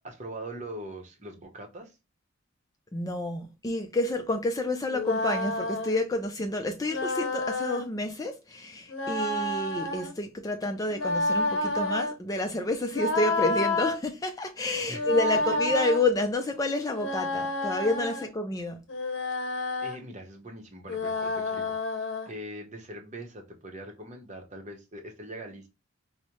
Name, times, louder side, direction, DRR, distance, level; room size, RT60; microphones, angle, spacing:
voice 1, 0.0-2.0 14.9-15.1 19.8-25.7, right 1 dB, 35° right, 0.8 m, -42 dB
voice 2, 2.9-18.8, left 2 dB, 15° left, 0.3 m, -29 dB
sound 1, 4.9-6.0 6.9-7.9 8.9-10.1 10.9-12.1 12.9-14.0 14.9-16.0 16.9-18.3 18.9-20.0 20.9-22.3, left 2 dB, 65° left, 0.8 m, -29 dB
4.9 x 2.1 x 2.9 m
head